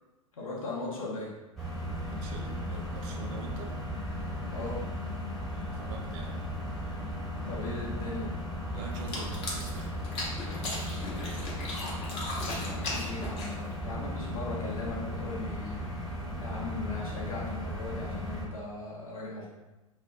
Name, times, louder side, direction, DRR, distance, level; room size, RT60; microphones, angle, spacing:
voice 1, 0.3-1.4 4.5-4.8 7.5-8.4 12.6-15.9 16.4-19.5, left 2 dB, 75° left, -4 dB, 0.9 m, -38 dB
sound 1, 1.6-18.5, left 1 dB, ahead, 0.8 m, -36 dB
voice 2, 2.1-3.8 5.4-6.5 8.7-10.0 10.3-11.8, right 2 dB, 40° right, 1 dB, 0.5 m, -44 dB
sound 2, 8.9-13.8, left 2 dB, 35° left, 0.8 m, -37 dB
2.1 x 2.1 x 3.7 m, 1.1 s
figure-of-eight pair, 95°, 18 cm